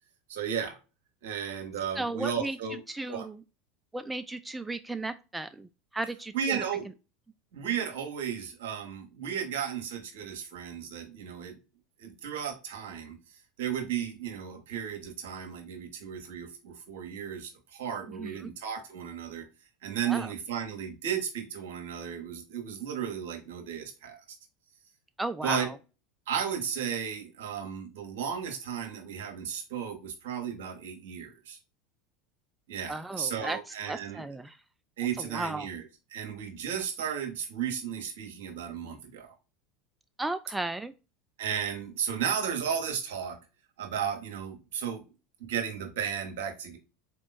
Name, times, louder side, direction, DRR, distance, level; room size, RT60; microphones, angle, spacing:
voice 1, 0.3-0.8 1.2-2.8 3.1-3.3 6.3-6.8 7.5-11.6 12.0-13.2 13.6-19.4 19.8-24.2 25.4-25.7 26.3-31.6 32.7-34.2 35.0-35.8 36.1-39.3 41.4-43.4 43.8-45.0 45.4-46.8, right 8 dB, 70° right, 5 dB, 1.3 m, -34 dB
voice 2, 1.9-3.4 3.9-6.6 18.1-18.5 20.0-20.3 25.2-25.8 32.9-33.6 33.9-34.6 35.2-35.7 40.2-40.9, right 2 dB, 10° right, 10 dB, 0.3 m, -35 dB
4.2 x 3.0 x 4.1 m, 0.30 s
hypercardioid pair, 80°, 0 cm